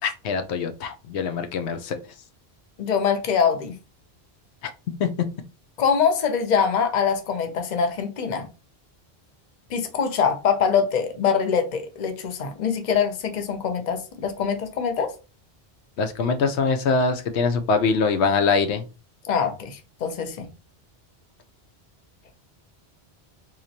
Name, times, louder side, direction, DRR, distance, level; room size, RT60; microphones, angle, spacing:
voice 1, 0.0-2.0 5.0-5.1 16.0-18.8, left 4 dB, 85° left, 0.9 m, -23 dB
voice 2, 2.8-3.8 5.8-8.5 9.7-15.1 19.2-20.5, left 6 dB, 45° left, 0.8 m, -24 dB
4.0 x 3.1 x 2.7 m
omnidirectional pair, 1.1 m